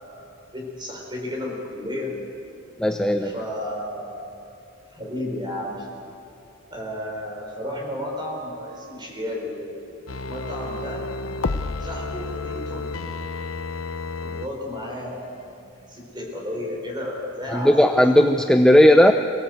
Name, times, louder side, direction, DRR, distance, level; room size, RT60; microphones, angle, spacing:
voice 1, 0.0-2.2 3.2-4.3 4.9-5.9 6.7-9.7 10.3-11.0 11.8-12.9 14.2-17.7 18.2-18.3, left 1 dB, 20° right, -1 dB, 4.9 m, -33 dB
voice 2, 2.8-3.3 17.5-19.1, left 1 dB, 5° left, 5 dB, 0.6 m, -15 dB
sound 1, 10.1-14.5 14.9-15.0, left 3 dB, 75° left, 0.8 m, -31 dB
24.5 x 17.5 x 8.0 m, 2.6 s
head